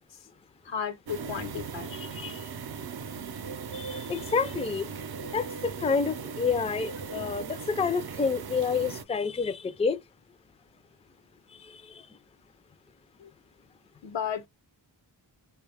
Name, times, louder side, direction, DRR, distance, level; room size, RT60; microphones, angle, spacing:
voice 1, 0.6-2.0 13.2-13.3 14.0-14.5, left 8 dB, 80° left, 0.8 m, -34 dB
sound 1, 1.1-9.0, right 6 dB, 60° right, 0.6 m, -38 dB
voice 2, 3.7-4.9 5.3-10.0 11.6-12.0, left 5 dB, 15° left, 0.4 m, -29 dB
4.2 x 2.2 x 3.4 m
wide cardioid pair, 65°, 44 cm